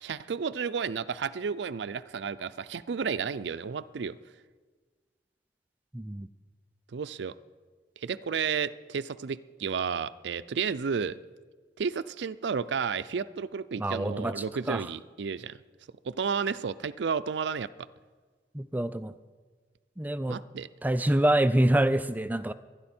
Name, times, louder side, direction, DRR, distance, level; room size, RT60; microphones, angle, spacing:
voice 1, 0.0-4.2 6.9-7.3 8.0-11.2 11.8-15.6 16.0-17.7 20.3-20.7, right 6 dB, 75° right, 13 dB, 0.4 m, -32 dB
voice 2, 5.9-6.3 13.8-14.8 18.5-19.1 20.0-20.4 20.8-22.5, right 1 dB, 10° right, 13 dB, 0.3 m, -26 dB
22.5 x 10.5 x 4.4 m, 1.4 s
head